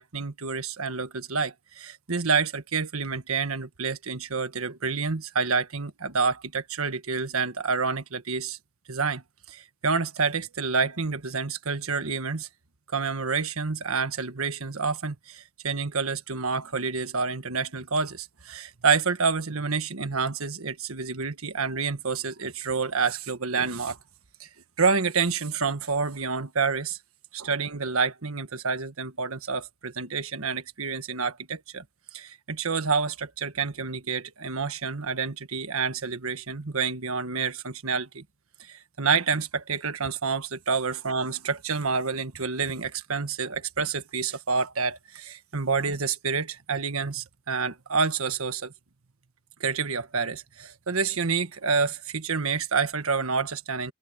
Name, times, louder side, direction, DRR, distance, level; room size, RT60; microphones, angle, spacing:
voice 1, 0.0-8.6 8.9-12.5 12.9-24.0 24.4-24.5 24.8-27.0 27.3-31.8 32.1-38.2 38.6-48.7 49.6-53.9, right 5 dB, 75° right, 1.5 m, -28 dB
head